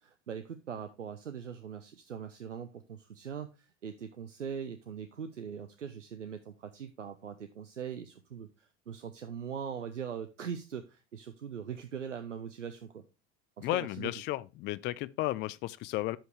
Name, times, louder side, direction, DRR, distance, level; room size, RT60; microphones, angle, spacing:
voice 1, 0.0-13.0 13.6-14.1, right 7 dB, 85° right, 0.7 m, -41 dB
voice 2, 13.6-16.2, left 17 dB, 30° left, 0.4 m, -33 dB
7.4 x 5.2 x 4.6 m
figure-of-eight pair, 75°, 36 cm